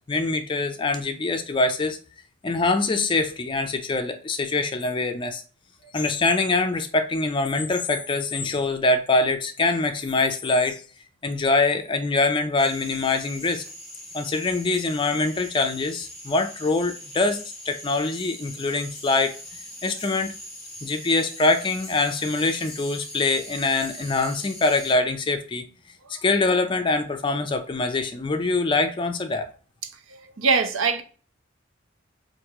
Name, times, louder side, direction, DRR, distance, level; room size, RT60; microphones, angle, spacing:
voice 1, 0.0-2.0 2.4-5.4 5.9-10.8 11.2-13.6 14.1-19.3 19.8-20.3 20.8-25.7 26.1-29.5, left 3 dB, 25° left, 0.4 m, -24 dB
sound 1, 12.6-24.9, left 1 dB, 5° left, 0.8 m, -41 dB
voice 2, 30.4-31.0, right 5 dB, 85° right, 0.6 m, -21 dB
4.6 x 2.6 x 2.9 m
head